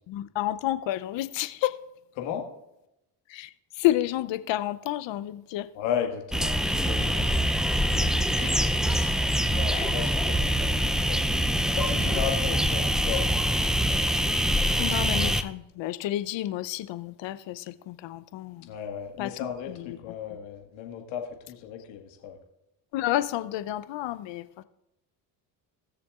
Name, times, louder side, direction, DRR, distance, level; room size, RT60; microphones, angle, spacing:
voice 1, 0.1-1.7 3.3-3.5 3.8-5.7 7.0-7.1 8.3-9.2 9.7-9.9 14.8-18.7 19.2-19.3 19.8-20.0 22.9-24.4, left 14 dB, 60° left, 14 dB, 0.7 m, -30 dB
voice 2, 5.7-7.5 7.8-8.2 9.4-11.2 11.8-13.3 18.7-22.4, left 8 dB, 85° left, 3 dB, 1.8 m, -35 dB
sound 1, 6.3-15.4, equal, ahead, 0.5 m, -24 dB
19.0 x 6.8 x 2.4 m, 0.87 s
supercardioid pair, 70°, 50 cm